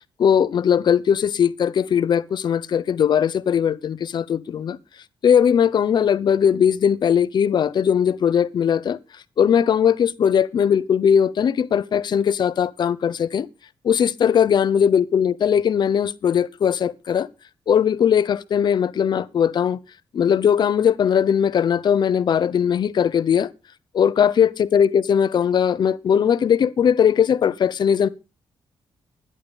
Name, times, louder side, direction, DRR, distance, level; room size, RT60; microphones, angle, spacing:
voice 1, 0.2-4.8 5.2-9.0 9.4-13.5 13.8-17.3 17.7-19.8 20.1-23.5 23.9-28.1, left 8 dB, 55° left, 0.9 m, -19 dB
12.0 x 11.0 x 5.2 m
wide cardioid pair, 145°, 9 cm